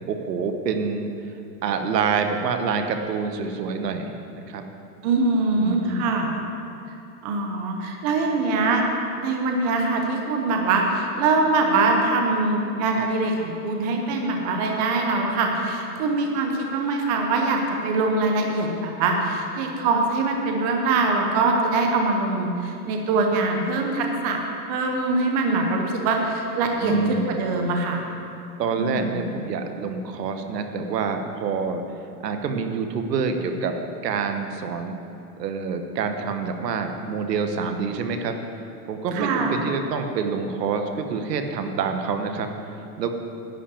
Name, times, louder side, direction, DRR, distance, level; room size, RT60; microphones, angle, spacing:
voice 1, 0.1-1.1 1.6-4.7 5.5-6.1 26.8-27.4 28.6-31.8 32.2-33.8 34.0-35.0 35.4-38.4 38.9-43.1, right 5 dB, 85° right, 6 dB, 1.3 m, -27 dB
voice 2, 5.0-6.3 7.2-8.8 9.2-24.4 24.7-28.0 28.8-29.2 39.1-39.6, right 3 dB, 25° right, 2 dB, 0.8 m, -23 dB
11.0 x 5.7 x 8.5 m, 2.8 s
supercardioid pair, 170°, 47 cm